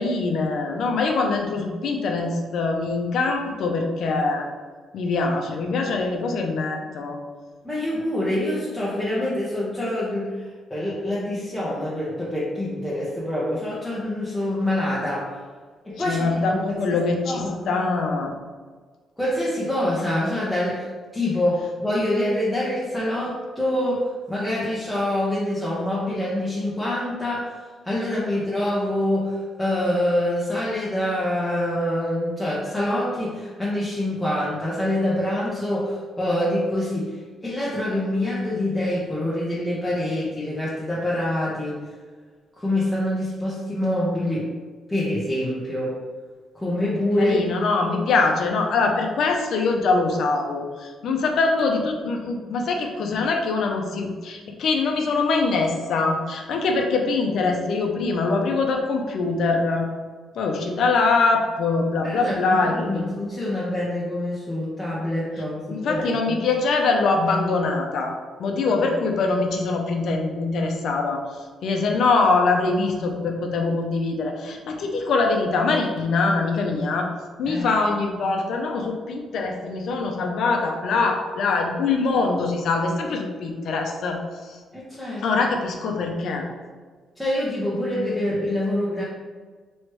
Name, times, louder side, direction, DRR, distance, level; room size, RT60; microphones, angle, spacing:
voice 1, 0.0-4.5 4.9-7.2 16.0-18.3 47.2-59.9 60.3-63.0 65.7-71.2 71.6-77.1 77.4-84.6 85.2-86.5, left 3 dB, 70° left, 3 dB, 0.7 m, -23 dB
voice 2, 7.6-10.4 10.7-15.3 15.8-16.8 17.3-17.8 19.2-20.9 21.1-24.0 24.3-27.5 27.8-37.1 37.4-41.8 42.6-44.5 44.9-45.9 46.5-47.4 62.0-66.4 77.5-77.7 84.7-85.3 87.2-89.0, left 1 dB, 5° left, -8 dB, 1.0 m, -25 dB
3.1 x 3.1 x 4.6 m, 1.5 s
cardioid pair, 90°, 0 cm